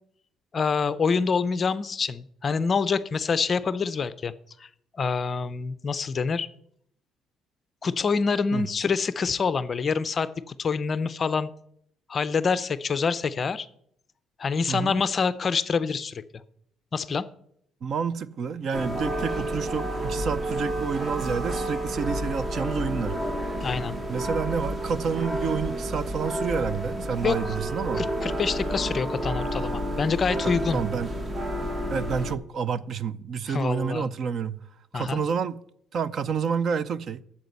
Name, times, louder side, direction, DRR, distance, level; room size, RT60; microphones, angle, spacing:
voice 1, 0.5-4.3 4.6-4.7 4.9-6.5 7.8-11.5 12.1-13.7 14.4-16.2 16.9-17.3 23.6-24.0 27.2-27.4 28.0-30.8 33.5-34.1 34.9-35.2, left 5 dB, 30° left, 0.5 m, -26 dB
voice 2, 14.7-15.0 17.8-23.2 24.1-28.0 30.7-31.1 31.9-34.6 34.9-35.6 35.9-37.2, right 6 dB, 45° right, 0.5 m, -29 dB
sound 1, 18.7-32.3, right 1 dB, 20° right, 0.9 m, -30 dB
9.4 x 7.3 x 8.0 m
cardioid pair, 155°, 0 cm